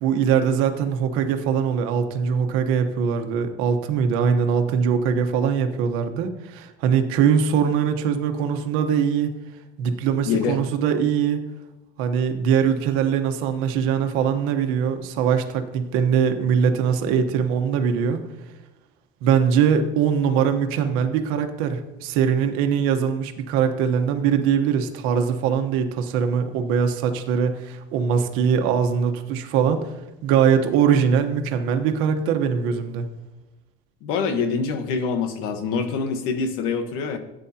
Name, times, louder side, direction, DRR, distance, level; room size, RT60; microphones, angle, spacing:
voice 1, 0.0-9.3 9.8-11.4 12.0-18.2 19.2-29.9 30.2-33.1, right 7 dB, 80° right, 6 dB, 1.2 m, -22 dB
voice 2, 10.2-10.6 34.0-37.2, left 5 dB, 85° left, 8 dB, 1.3 m, -25 dB
15.0 x 9.0 x 2.9 m, 1.0 s
cardioid pair, 180°, 21 cm